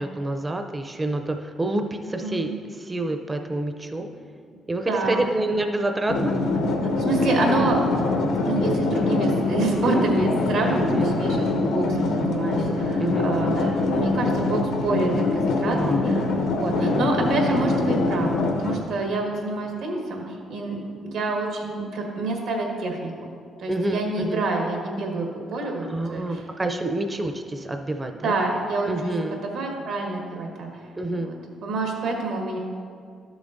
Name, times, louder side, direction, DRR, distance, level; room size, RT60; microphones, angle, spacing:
voice 1, 0.0-4.1 4.7-6.4 9.8-10.1 10.7-11.1 13.0-13.3 15.7-16.1 16.8-17.1 23.7-24.4 25.8-28.4 28.9-29.4 31.0-31.3, right 2 dB, 20° right, 5 dB, 0.5 m, -28 dB
voice 2, 4.9-5.2 6.9-7.8 8.4-26.4 28.2-28.9 29.4-30.7 31.1-31.3 31.6-32.6, right 2 dB, 80° right, 0 dB, 1.5 m, -27 dB
sound 1, 6.1-18.7, left 3 dB, 90° left, 0.8 m, -24 dB
12.0 x 7.0 x 2.6 m, 2.2 s
cardioid pair, 90°, 0 cm